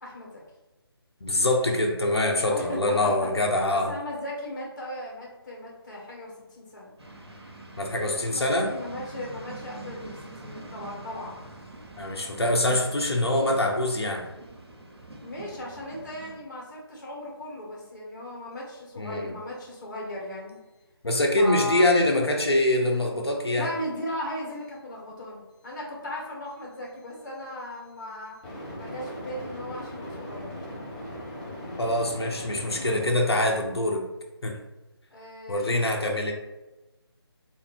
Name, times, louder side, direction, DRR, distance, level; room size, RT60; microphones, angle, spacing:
voice 1, 0.0-0.3 2.5-3.0 3.7-6.9 8.3-11.4 15.2-20.6 21.4-21.9 23.5-28.4 28.7-30.6 35.1-35.7, left 1 dB, 45° left, -3 dB, 1.5 m, -37 dB
voice 2, 1.2-3.9 7.8-8.7 12.0-14.2 19.0-19.3 21.0-23.7 31.8-34.0 34.4-34.5 35.5-36.3, left 1 dB, 75° left, 1 dB, 0.8 m, -24 dB
sound 1, 7.0-16.4, right 2 dB, 75° right, 0.9 m, -44 dB
sound 2, 28.4-33.1, left 1 dB, 20° left, 0.9 m, -38 dB
3.4 x 2.6 x 3.5 m, 1.1 s
figure-of-eight pair, 155°, 14 cm